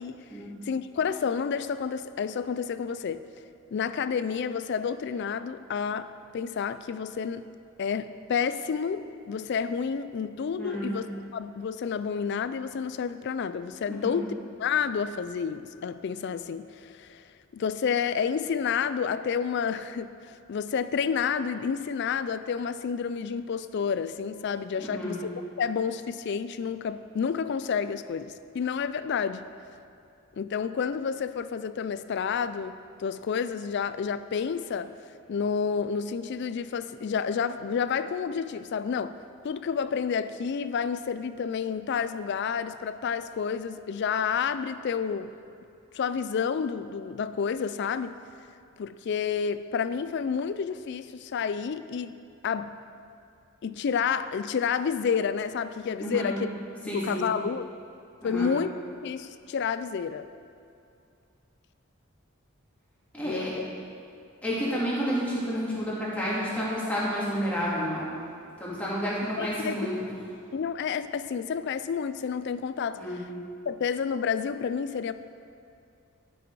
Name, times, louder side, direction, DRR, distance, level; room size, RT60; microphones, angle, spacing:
voice 1, 0.6-3.2 3.7-7.4 7.8-9.0 9.3-14.3 14.6-17.2 17.5-25.3 25.6-29.4 30.4-34.9 35.3-39.2 39.4-45.3 45.9-48.1 48.8-52.1 52.4-52.8 53.6-56.4 56.8-57.7 58.2-58.7 59.0-60.3 63.2-63.7 69.4-69.9 70.5-73.2 73.7-75.1, left 6 dB, 55° left, 13 dB, 0.3 m, -30 dB
voice 2, 10.6-10.9 13.9-14.2 24.8-25.2 56.0-56.3 56.9-57.2 58.2-58.5 63.1-63.5 64.4-68.0 68.6-69.9 73.0-73.2, equal, 5° left, -8 dB, 2.3 m, -30 dB
11.5 x 6.2 x 4.7 m, 2.5 s
head